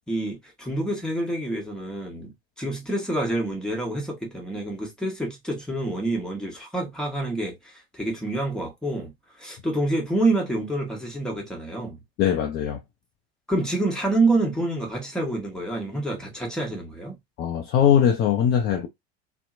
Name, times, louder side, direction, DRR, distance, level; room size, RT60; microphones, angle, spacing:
voice 1, 0.1-2.3 2.6-9.1 9.4-12.0 13.5-17.2, right 2 dB, ahead, 1.0 m, -27 dB
voice 2, 12.2-12.8 17.4-18.9, left 9 dB, 30° left, 0.4 m, -21 dB
2.7 x 2.0 x 2.4 m
figure-of-eight pair, 75°, 32 cm